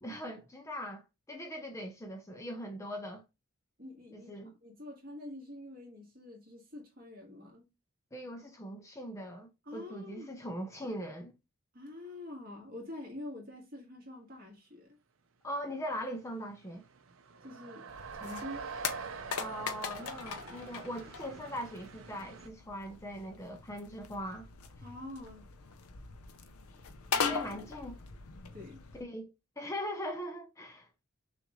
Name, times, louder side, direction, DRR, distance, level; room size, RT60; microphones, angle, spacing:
voice 1, 0.0-3.2 4.1-4.5 8.1-11.3 15.4-16.8 19.4-24.5 27.3-28.0 28.9-30.9, equal, 15° left, 0.5 m, -41 dB
voice 2, 3.8-7.7 9.6-10.3 11.7-15.0 17.4-17.9 18.1-18.7 24.8-25.5 27.1-27.6 28.5-28.8, left 1 dB, 40° right, 1.7 m, -46 dB
sound 1, 15.9-16.0 16.3-22.5, right 5 dB, 70° right, 0.6 m, -45 dB
sound 2, 17.9-29.0, left 6 dB, 85° left, 0.6 m, -40 dB
6.2 x 2.5 x 3.0 m
head